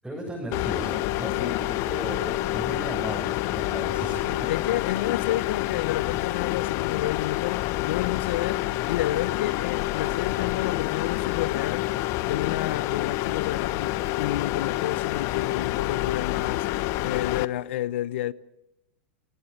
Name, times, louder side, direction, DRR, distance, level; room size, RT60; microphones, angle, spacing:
voice 1, 0.0-4.5, right 1 dB, 5° right, 7.9 m, -36 dB
sound 1, 0.5-17.5, left 17 dB, 50° left, 1.0 m, -28 dB
voice 2, 4.3-11.9 12.2-16.7 17.0-18.3, left 13 dB, 75° left, 0.8 m, -30 dB
29.5 x 19.0 x 7.3 m
hypercardioid pair, 105°, 6 cm